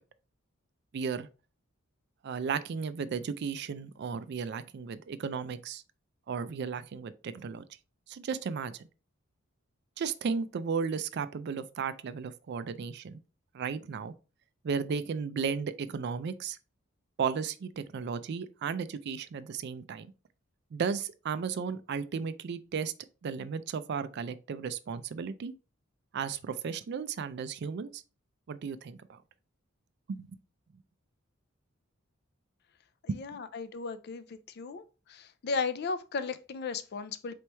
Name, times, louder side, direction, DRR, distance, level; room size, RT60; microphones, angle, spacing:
voice 1, 0.9-1.3 2.2-5.8 6.3-7.6 8.1-8.9 10.0-13.2 13.5-14.1 14.6-16.6 17.2-20.1 20.7-22.9 23.2-25.5 26.1-28.0 28.5-29.2 30.1-30.3 33.1-33.2, right 6 dB, 50° right, 0.3 m, -34 dB
voice 2, 33.1-34.8 35.1-37.3, left 4 dB, 50° left, 0.4 m, -35 dB
4.2 x 3.1 x 3.3 m
head